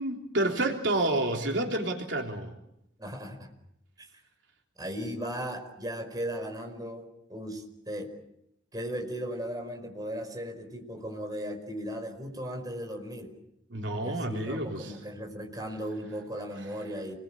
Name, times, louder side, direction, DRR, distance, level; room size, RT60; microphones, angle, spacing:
voice 1, 0.0-2.5 13.7-14.9, right 1 dB, 70° right, 2 dB, 3.5 m, -29 dB
voice 2, 3.0-3.5 4.0-4.1 4.8-8.1 8.7-13.3 14.0-17.1, equal, 20° right, 3 dB, 5.0 m, -37 dB
28.5 x 21.0 x 8.9 m, 0.80 s
head